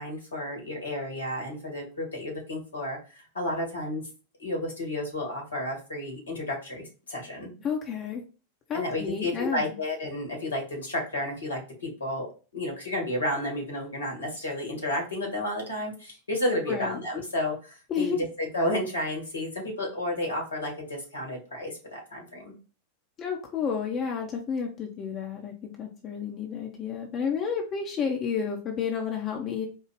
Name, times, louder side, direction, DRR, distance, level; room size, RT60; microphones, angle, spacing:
voice 1, 0.0-4.0 4.4-7.5 8.7-22.5, left 1 dB, 75° left, 0 dB, 2.1 m, -32 dB
voice 2, 7.6-8.2 8.7-9.7 16.7-17.0 17.9-18.2 23.2-29.7, left 6 dB, 30° left, 1 dB, 0.9 m, -31 dB
4.5 x 2.4 x 4.9 m, 0.35 s
figure-of-eight pair, 90°, 0 cm